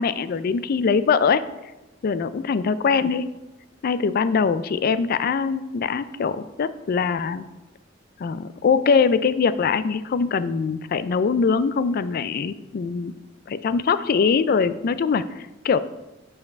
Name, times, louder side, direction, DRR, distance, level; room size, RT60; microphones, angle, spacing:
voice 1, 0.0-1.4 2.0-3.3 3.8-7.4 8.2-13.2 13.5-15.8, left 5 dB, 50° left, 14 dB, 0.3 m, -22 dB
7.4 x 4.9 x 5.2 m, 1.1 s
head